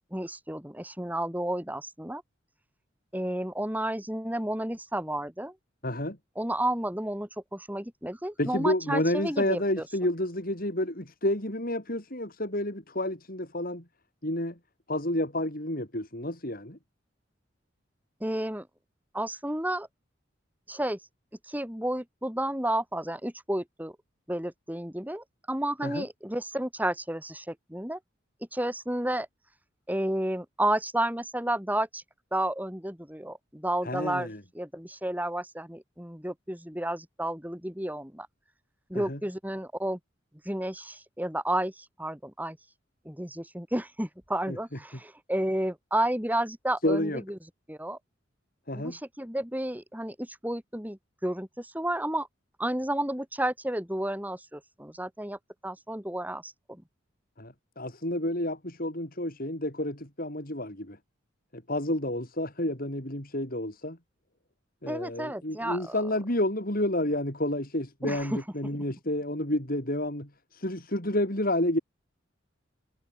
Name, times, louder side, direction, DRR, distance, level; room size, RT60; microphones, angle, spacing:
voice 1, 0.1-2.2 3.1-5.5 6.3-9.8 18.2-18.7 19.1-19.9 20.7-21.0 21.5-24.0 24.3-28.0 28.5-29.3 29.9-32.0 32.3-34.3 34.5-38.3 38.9-40.0 40.4-42.6 43.0-47.4 47.7-48.0 48.7-52.3 52.6-56.8 64.9-66.0 68.0-68.4, right 1 dB, 10° right, 6.7 m, -31 dB
voice 2, 5.8-6.2 8.4-13.8 14.2-14.6 14.9-16.8 25.8-26.0 33.8-34.4 38.9-39.2 44.5-44.6 46.8-47.2 48.7-49.0 57.4-61.0 61.5-64.0 64.8-71.8, left 1 dB, 50° left, 7.2 m, -30 dB
head